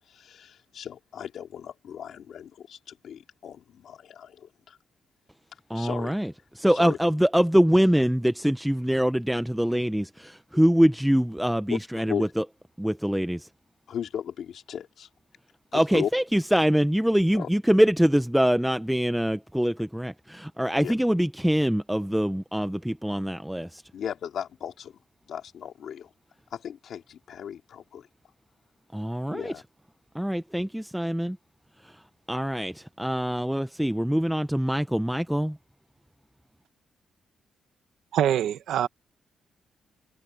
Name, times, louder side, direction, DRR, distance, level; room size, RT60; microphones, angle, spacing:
voice 1, 0.0-4.8 5.5-6.3 6.7-7.0 11.7-11.8 12.1-12.3 13.9-15.1 15.7-16.1 17.3-17.5 20.8-20.9 23.9-26.1 26.5-28.1 29.3-29.6, left 9 dB, 70° left, 2.9 m, -36 dB
voice 2, 5.7-6.3 6.6-12.4 12.8-13.5 15.7-23.8 28.9-29.5 30.1-31.4 32.3-35.6, equal, 5° right, 0.6 m, -24 dB
voice 3, 38.1-38.9, right 10 dB, 85° right, 1.2 m, -24 dB
cardioid pair, 115°, 0 cm